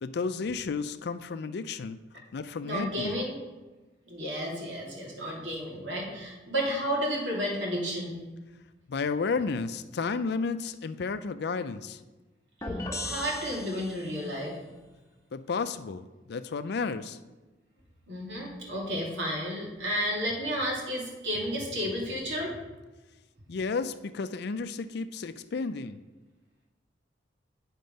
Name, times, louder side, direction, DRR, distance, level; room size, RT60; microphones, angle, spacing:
voice 1, 0.0-2.0 2.3-3.2 8.9-12.0 15.3-17.2 23.5-26.0, left 4 dB, 60° left, 12 dB, 0.4 m, -32 dB
voice 2, 2.6-3.3 4.1-8.2 13.0-14.6 18.1-22.5, equal, 80° right, -3 dB, 2.5 m, -32 dB
sound 1, 12.6-14.3, left 1 dB, 15° left, 1.0 m, -36 dB
9.3 x 4.5 x 5.2 m, 1.2 s
head